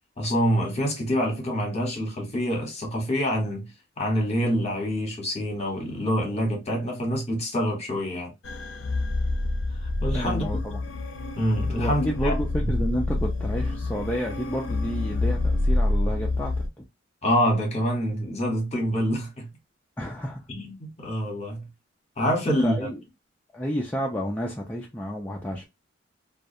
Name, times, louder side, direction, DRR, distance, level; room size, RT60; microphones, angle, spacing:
voice 1, 0.2-3.7 4.0-8.3 10.0-10.4 11.4-12.3 12.6-12.7 17.2-19.5 20.5-21.7 22.2-22.9, equal, 35° left, 1.0 m, -26 dB
sound 1, 8.4-16.7, left 2 dB, 65° left, 0.6 m, -27 dB
voice 2, 10.1-10.8 11.8-16.6 20.0-20.4 22.5-23.0 23.5-25.6, equal, 10° left, 0.4 m, -30 dB
2.3 x 2.2 x 2.7 m
head